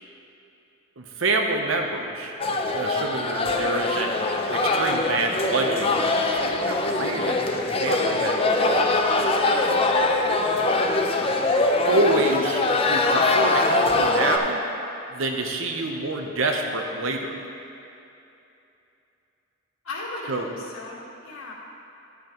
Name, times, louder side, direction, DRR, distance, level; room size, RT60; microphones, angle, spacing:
voice 1, 1.0-2.3 2.7-4.1 4.5-8.8 11.8-14.6 15.1-17.3 20.3-20.5, right 2 dB, 70° right, 3 dB, 0.8 m, -27 dB
sound 1, 2.4-14.4, left 2 dB, 25° left, 0.5 m, -23 dB
voice 2, 2.9-3.3 19.8-21.5, left 2 dB, 85° left, -4 dB, 1.6 m, -37 dB
11.5 x 8.0 x 3.0 m, 2.8 s
head